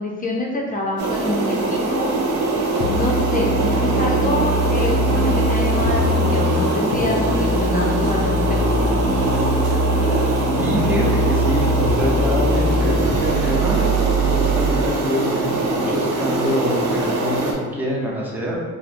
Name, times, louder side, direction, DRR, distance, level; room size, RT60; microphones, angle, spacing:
voice 1, 0.0-2.1 2.9-8.9, left 1 dB, 30° left, -2 dB, 0.5 m, -26 dB
sound 1, 1.0-17.5, right 2 dB, 75° right, 0.7 m, -22 dB
sound 2, 2.8-14.8, equal, 75° left, 0.5 m, -22 dB
voice 2, 10.6-13.8 14.2-18.6, equal, 5° right, -4 dB, 0.7 m, -25 dB
4.1 x 2.1 x 2.5 m, 1.4 s
cardioid pair, 90°, 30 cm